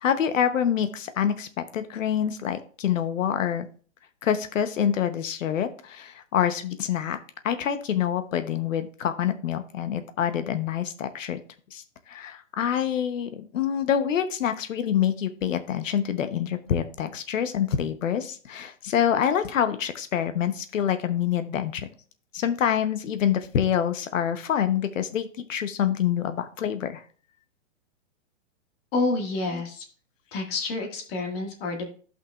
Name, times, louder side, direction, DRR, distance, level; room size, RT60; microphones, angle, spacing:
voice 1, 0.0-3.6 4.2-7.2 7.4-11.4 11.7-21.9 22.3-27.0, left 9 dB, 85° left, 10 dB, 1.0 m, -26 dB
voice 2, 28.9-29.8 30.3-31.9, left 3 dB, 50° left, 1 dB, 1.9 m, -28 dB
13.0 x 5.7 x 2.4 m, 0.43 s
hypercardioid pair, 145°, 38 cm